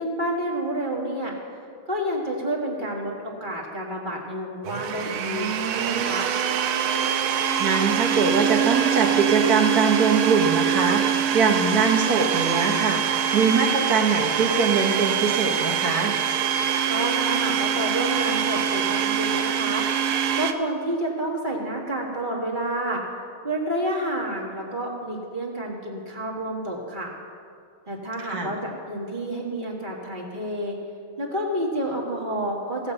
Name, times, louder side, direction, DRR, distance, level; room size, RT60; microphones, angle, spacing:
voice 1, 0.0-1.3 1.9-6.3 16.9-19.9 20.3-23.0 23.4-27.1 27.9-30.8 31.2-32.9, right 1 dB, 25° right, -2 dB, 1.5 m, -29 dB
Domestic sounds home sounds, 4.6-20.5, right 8 dB, 85° right, 1.6 m, -24 dB
voice 2, 7.6-11.0 11.3-16.1 28.3-28.5, right 5 dB, 55° right, 3 dB, 1.3 m, -22 dB
17.0 x 5.7 x 7.7 m, 2.4 s
omnidirectional pair, 2.3 m